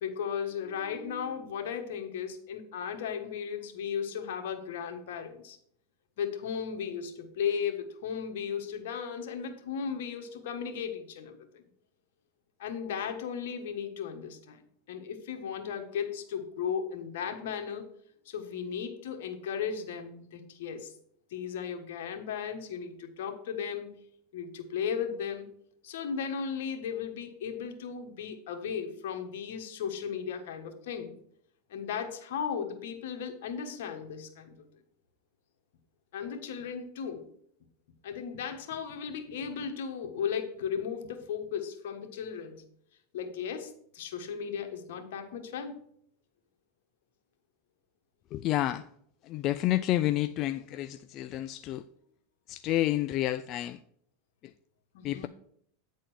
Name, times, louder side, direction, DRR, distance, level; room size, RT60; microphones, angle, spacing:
voice 1, 0.0-5.6 6.2-11.6 12.6-14.6 14.9-17.8 18.2-20.9 21.3-23.9 24.3-25.5 25.8-31.1 31.7-34.7 36.1-37.3 38.0-42.6 43.1-45.8 54.9-55.3, left 7 dB, 75° left, 1.5 m, -36 dB
voice 2, 48.3-48.8 49.3-51.8 52.5-53.8 55.0-55.3, left 14 dB, 40° left, 0.3 m, -29 dB
9.2 x 4.2 x 6.3 m
supercardioid pair, 130°, 0 cm